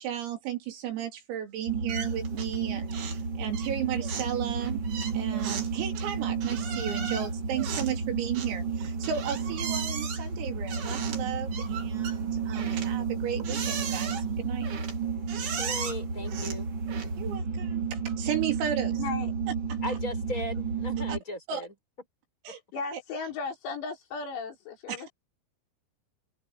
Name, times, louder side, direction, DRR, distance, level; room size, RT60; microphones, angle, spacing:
voice 1, 0.0-4.8 5.1-14.7 17.2-19.0 19.7-19.8 21.1-21.2 21.5-21.6 22.5-22.6 22.9-23.0 24.9-25.0, right 9 dB, 80° right, 6.2 m, -34 dB
sound 1, 1.7-21.2, right 5 dB, 25° right, 4.0 m, -32 dB
sound 2, 1.9-2.6 2.9-3.3 3.5-17.3, right 6 dB, 50° right, 4.9 m, -38 dB
voice 2, 15.6-16.7 19.8-22.1 22.5-22.6, left 1 dB, 15° left, 6.5 m, -37 dB
voice 3, 19.0-19.3 22.7-25.1, left 4 dB, 85° left, 7.8 m, -36 dB
omnidirectional pair, 6.0 m